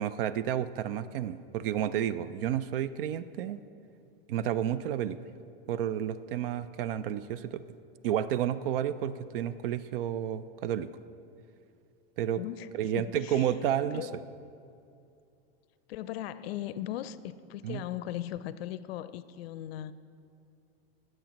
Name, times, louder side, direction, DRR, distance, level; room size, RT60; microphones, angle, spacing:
voice 1, 0.0-3.6 4.3-5.2 5.7-7.6 8.0-10.9 12.2-12.4 12.8-14.1 17.6-17.8, right 10 dB, 70° right, 14 dB, 0.5 m, -31 dB
voice 2, 12.3-13.5 13.9-14.3 15.9-19.9, left 12 dB, 85° left, 14 dB, 0.5 m, -38 dB
19.5 x 7.7 x 3.0 m, 2.6 s
supercardioid pair, 160°, 30 cm